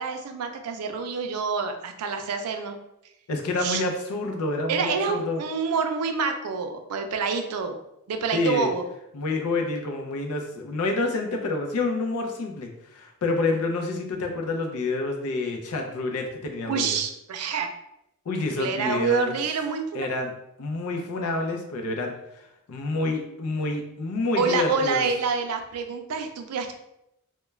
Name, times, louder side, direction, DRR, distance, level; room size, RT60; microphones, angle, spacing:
voice 1, 0.0-2.8 3.6-3.8 4.7-7.8 8.1-8.9 16.7-17.7 18.5-20.1 24.4-26.7, right 5 dB, 85° right, 6 dB, 0.4 m, -27 dB
voice 2, 3.3-5.4 8.3-8.7 9.1-17.0 18.3-19.4 19.9-20.3 20.6-25.0, left 3 dB, 85° left, 3 dB, 0.5 m, -28 dB
2.3 x 2.1 x 3.1 m, 0.83 s
head